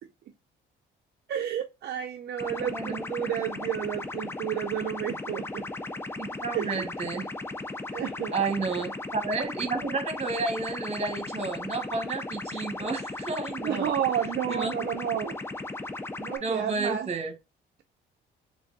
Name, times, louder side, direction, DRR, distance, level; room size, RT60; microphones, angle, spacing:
voice 1, 1.3-5.7 6.5-6.9 7.9-8.3 8.7-8.9 13.6-15.4 16.2-17.1, right 10 dB, 55° right, 0.5 m, -31 dB
sound 1, 2.4-16.4, left 2 dB, 10° left, 0.4 m, -36 dB
voice 2, 2.7-3.3 6.2-7.3 8.3-13.9 14.5-14.7 16.4-17.3, right 3 dB, 30° right, 1.1 m, -31 dB
3.6 x 3.3 x 2.5 m
cardioid pair, 90°, 20 cm